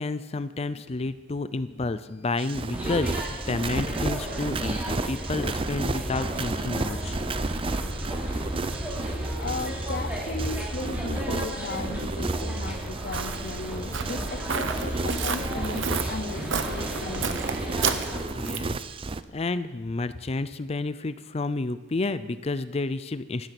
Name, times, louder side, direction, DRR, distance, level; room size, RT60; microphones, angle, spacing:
voice 1, 0.0-7.2 18.3-18.9 19.3-23.5, left 3 dB, 30° left, 13 dB, 0.5 m, -30 dB
sound 1, 2.4-19.2, right 3 dB, 30° right, 0.5 m, -34 dB
sound 2, 2.7-18.2, equal, 10° right, 4.4 m, -33 dB
voice 2, 9.4-17.4, left 3 dB, 55° left, 12 dB, 0.9 m, -36 dB
Walk footsteps, 12.5-18.8, right 6 dB, 75° right, 1.0 m, -32 dB
17.0 x 12.0 x 6.0 m, 1.3 s
head